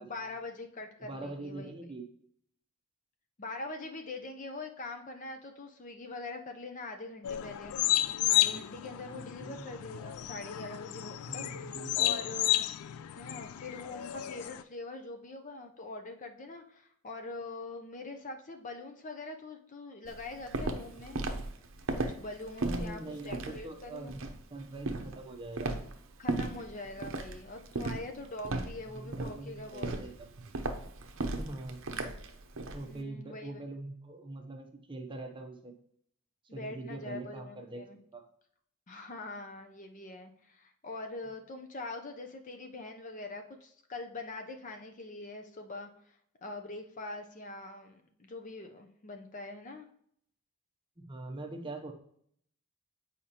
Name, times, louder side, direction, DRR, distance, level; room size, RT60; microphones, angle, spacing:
voice 1, 0.0-1.9 3.4-7.8 8.3-12.6 13.1-21.2 21.9-24.1 26.2-29.9 32.8-33.6 36.5-38.0 38.9-49.9, left 2 dB, 35° left, 5 dB, 0.6 m, -43 dB
voice 2, 1.0-2.1 9.1-9.7 11.2-12.2 22.6-24.2 24.5-25.9 28.9-30.3 31.4-31.8 32.7-35.7 36.5-38.2 51.0-51.9, right 2 dB, 20° right, 3 dB, 0.7 m, -43 dB
sound 1, 7.2-14.6, left 14 dB, 75° left, 0.3 m, -32 dB
Walk footsteps, 20.0-32.8, right 2 dB, 60° right, 0.7 m, -36 dB
8.4 x 5.0 x 2.9 m, 0.67 s
head